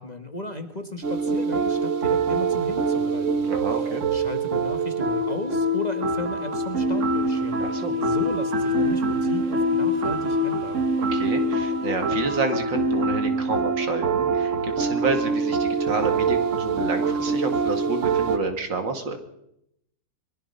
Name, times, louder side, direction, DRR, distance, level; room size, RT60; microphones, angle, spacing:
voice 1, 0.0-7.7 8.0-10.8, left 2 dB, 25° left, 6 dB, 1.5 m, -36 dB
sound 1, 1.0-18.4, right 2 dB, 45° right, 1.4 m, -24 dB
voice 2, 3.4-4.0 7.6-7.9 11.1-19.2, right 3 dB, 75° right, 6 dB, 3.0 m, -29 dB
23.5 x 22.0 x 5.6 m, 0.79 s
omnidirectional pair, 2.0 m